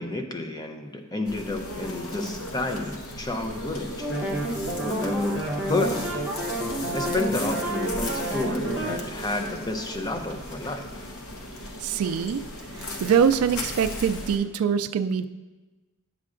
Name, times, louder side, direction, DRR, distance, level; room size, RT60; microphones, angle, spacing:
voice 1, 0.0-4.1 4.5-6.2 6.9-11.1, left 2 dB, 20° left, 4 dB, 0.5 m, -30 dB
sound 1, 1.3-14.4, left 1 dB, 85° left, 1.0 m, -36 dB
sound 2, 4.0-9.0, right 1 dB, 60° left, 1.2 m, -30 dB
voice 2, 11.8-12.5 12.7-15.2, right 7 dB, 85° right, 11 dB, 0.3 m, -24 dB
9.4 x 7.4 x 2.5 m, 1.2 s
head